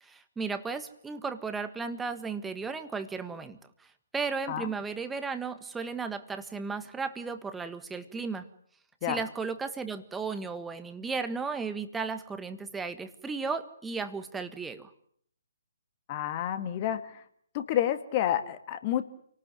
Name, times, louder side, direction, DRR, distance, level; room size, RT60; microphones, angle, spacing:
voice 1, 0.0-3.6 4.1-8.5 9.0-14.9, right 4 dB, 5° right, 9 dB, 1.5 m, -35 dB
voice 2, 16.1-17.2 17.5-19.0, left 11 dB, 30° left, 10 dB, 2.1 m, -29 dB
29.0 x 19.0 x 9.4 m, 0.68 s
figure-of-eight pair, 135°, 0 cm